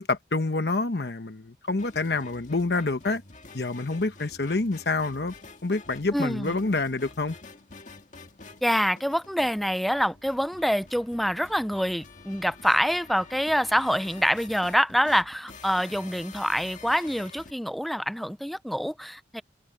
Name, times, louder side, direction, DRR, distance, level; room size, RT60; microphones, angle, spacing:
voice 1, 0.0-3.2 3.5-5.3 5.6-7.4, left 3 dB, 65° left, 1.0 m, -27 dB
sound 1, 1.8-17.5, left 3 dB, 45° left, 1.8 m, -48 dB
voice 2, 6.1-6.6 8.6-19.4, equal, ahead, 0.4 m, -26 dB
head